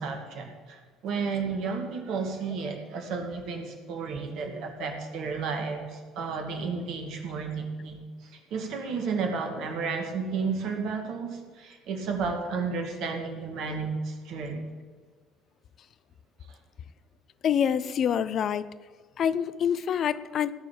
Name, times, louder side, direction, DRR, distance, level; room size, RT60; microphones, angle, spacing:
voice 1, 0.0-14.6 16.5-16.6, right 5 dB, 60° right, 4 dB, 2.4 m, -32 dB
voice 2, 17.4-18.7 19.2-20.5, left 8 dB, 50° left, 16 dB, 0.5 m, -26 dB
17.0 x 6.8 x 8.9 m, 1.5 s
figure-of-eight pair, 55°, 0 cm